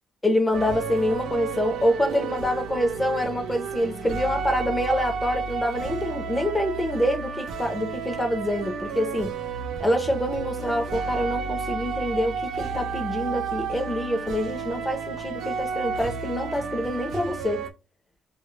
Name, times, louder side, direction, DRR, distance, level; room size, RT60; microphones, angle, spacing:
voice 1, 0.2-9.3 9.8-17.6, left 1 dB, 10° left, 0.5 m, -26 dB
sound 1, 0.5-17.7, right 5 dB, 60° right, 0.3 m, -32 dB
2.2 x 2.0 x 3.1 m
cardioid pair, 160°, 0 cm